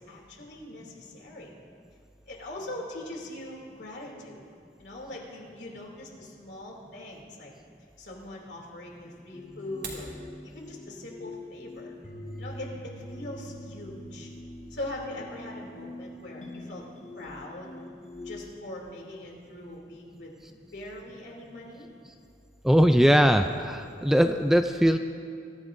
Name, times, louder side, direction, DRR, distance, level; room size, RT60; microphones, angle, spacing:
voice 1, 0.0-1.5 2.3-4.4 4.8-7.5 8.0-10.1 10.4-11.9 12.4-14.3 14.7-16.8 17.1-17.8 18.2-20.3 20.7-21.9, left 1 dB, 70° left, -1 dB, 2.8 m, -41 dB
sound 1, 9.3-18.6, left 1 dB, 40° left, 2.0 m, -43 dB
sound 2, 9.6-10.1, right 4 dB, 60° right, 3.1 m, -40 dB
voice 2, 22.6-25.0, equal, 5° right, 6 dB, 0.3 m, -20 dB
23.5 x 14.5 x 2.6 m, 2.5 s
head